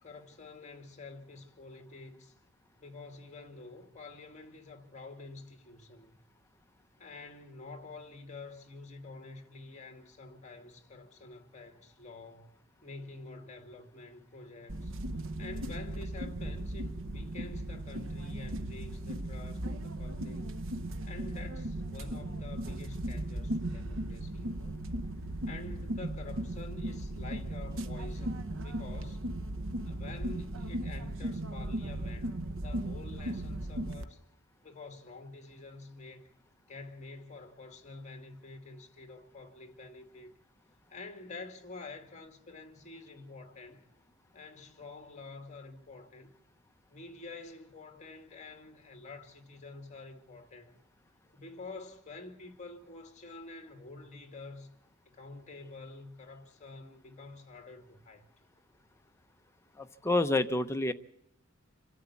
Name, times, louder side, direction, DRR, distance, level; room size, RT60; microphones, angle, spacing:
voice 1, 0.0-2.3 2.8-6.2 7.0-14.9 15.4-20.5 21.0-24.8 25.4-29.2 29.9-34.2 34.6-36.3 36.7-40.3 40.9-43.9 44.3-46.3 46.9-50.8 51.3-54.8 55.1-58.3, left 3 dB, 35° left, 2.3 m, -48 dB
sound 1, 14.7-34.0, right 1 dB, 65° right, 0.9 m, -37 dB
voice 2, 59.8-60.9, left 2 dB, 15° left, 0.8 m, -28 dB
27.0 x 12.5 x 8.4 m
head